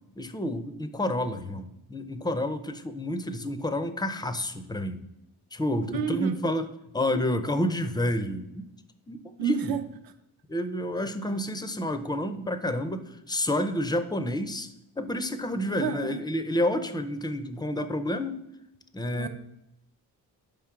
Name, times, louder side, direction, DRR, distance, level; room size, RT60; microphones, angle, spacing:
voice 1, 0.2-5.0 5.5-6.6 6.9-8.7 9.1-9.8 10.5-14.7 15.0-18.4 18.9-19.3, left 1 dB, 10° left, 9 dB, 0.4 m, -29 dB
voice 2, 5.9-6.4 9.4-10.1 11.0-11.1 15.6-16.2 19.2-19.3, right 9 dB, 60° right, 9 dB, 0.7 m, -31 dB
5.1 x 3.7 x 5.8 m, 0.86 s
cardioid pair, 115°, 40 cm